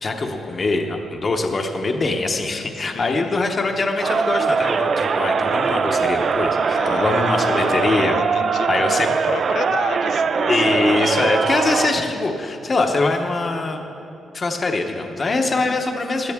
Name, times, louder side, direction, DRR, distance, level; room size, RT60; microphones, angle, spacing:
voice 1, 0.0-8.2 8.7-9.1 10.5-13.8 14.3-16.3, left 3 dB, 25° left, 4 dB, 0.8 m, -23 dB
voice 2, 2.8-3.4 6.7-11.3 15.5-15.8, left 8 dB, 50° left, 14 dB, 0.3 m, -31 dB
Crowd, 4.0-12.1, right 5 dB, 40° right, 0.4 m, -21 dB
16.5 x 12.0 x 3.6 m, 2.8 s
wide cardioid pair, 175°, 0 cm